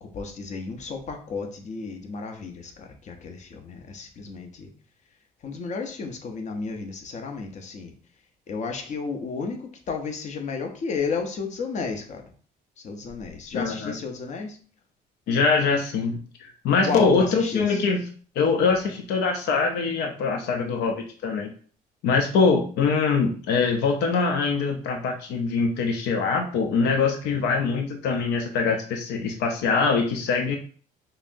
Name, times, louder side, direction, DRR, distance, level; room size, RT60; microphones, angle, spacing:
voice 1, 0.0-4.7 5.4-7.9 8.5-12.3 12.8-14.6 16.8-17.8 27.3-27.5, left 4 dB, 45° left, 4 dB, 0.7 m, -33 dB
voice 2, 13.5-13.9 15.3-18.0 18.4-20.9 21.2-21.5 22.0-30.6, left 4 dB, 85° left, 4 dB, 0.6 m, -23 dB
5.5 x 2.0 x 2.6 m, 0.43 s
cardioid pair, 110°, 17 cm